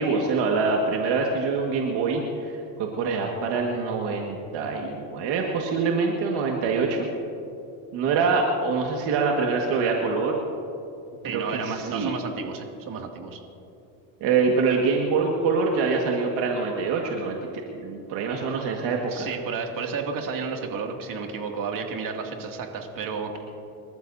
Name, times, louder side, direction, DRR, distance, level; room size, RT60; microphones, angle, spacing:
voice 1, 0.0-7.1 7.9-10.4 11.2-12.1 14.2-17.4 17.7-19.3, right 4 dB, 70° right, 0 dB, 1.9 m, -25 dB
voice 2, 11.2-13.4 19.1-23.4, right 5 dB, 50° right, 2 dB, 2.5 m, -32 dB
29.0 x 14.0 x 2.7 m, 2.8 s
supercardioid pair, 95°, 42 cm